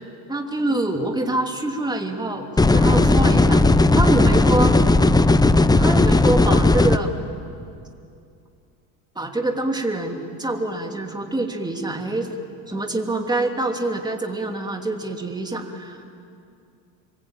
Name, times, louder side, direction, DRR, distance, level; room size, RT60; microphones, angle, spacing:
voice 1, 0.3-3.6 3.9-4.9 5.8-7.1 9.1-12.3 12.7-16.2, right 2 dB, 10° right, 3 dB, 3.0 m, -25 dB
sound 1, 2.6-7.0, left 2 dB, 10° left, 0.7 m, -16 dB
26.5 x 23.5 x 9.0 m, 2.4 s
cardioid pair, 115°, 44 cm